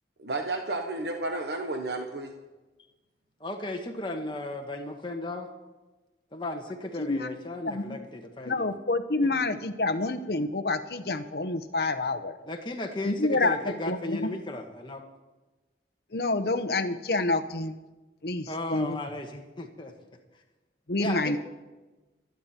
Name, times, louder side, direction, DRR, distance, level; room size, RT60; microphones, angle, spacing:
voice 1, 0.2-2.3, right 2 dB, 70° right, 4 dB, 1.1 m, -32 dB
voice 2, 3.4-5.5 6.3-8.7 9.2-9.3 12.4-15.0 18.5-19.9 21.0-21.4, left 1 dB, 25° left, 3 dB, 1.5 m, -35 dB
voice 3, 7.7-8.0 8.5-12.3 13.0-13.6 13.9-14.2 16.1-17.8 18.2-19.0 20.9-21.4, left 2 dB, 60° left, 10 dB, 0.9 m, -28 dB
25.0 x 9.5 x 4.4 m, 1.2 s
head